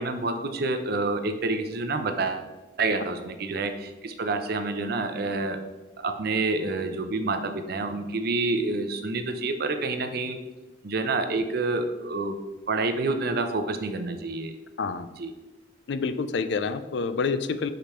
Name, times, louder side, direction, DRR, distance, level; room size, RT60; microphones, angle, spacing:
voice 1, 0.0-2.5 2.8-5.6 6.0-10.4 10.8-12.4 12.7-14.5 15.2-15.3, right 3 dB, 55° right, 8 dB, 0.6 m, -28 dB
voice 2, 15.9-17.7, left 4 dB, 65° left, 12 dB, 0.4 m, -28 dB
5.1 x 5.1 x 4.4 m, 1.1 s
head